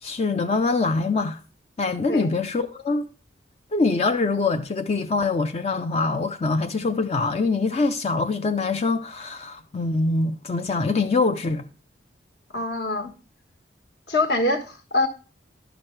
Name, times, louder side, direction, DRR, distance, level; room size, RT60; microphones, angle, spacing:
voice 1, 0.0-1.4 1.8-3.1 3.7-11.7, left 3 dB, 35° left, 0.4 m, -24 dB
voice 2, 12.5-13.1 14.1-15.1, left 2 dB, 60° left, 1.4 m, -24 dB
11.0 x 6.1 x 3.2 m
head